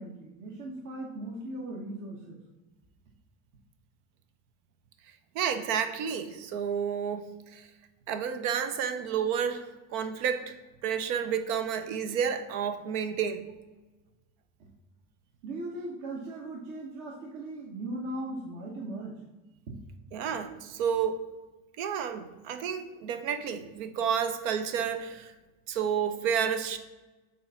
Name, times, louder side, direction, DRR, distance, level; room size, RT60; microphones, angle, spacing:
voice 1, 0.0-2.4 15.4-19.2 19.7-19.8, right 1 dB, 55° right, -2 dB, 1.2 m, -38 dB
voice 2, 5.3-7.7 8.1-10.6 10.8-13.5 20.1-21.2 21.8-25.3 25.7-26.8, right 7 dB, 75° right, 9 dB, 0.8 m, -30 dB
7.7 x 2.6 x 5.6 m, 1.2 s
supercardioid pair, 120°, 38 cm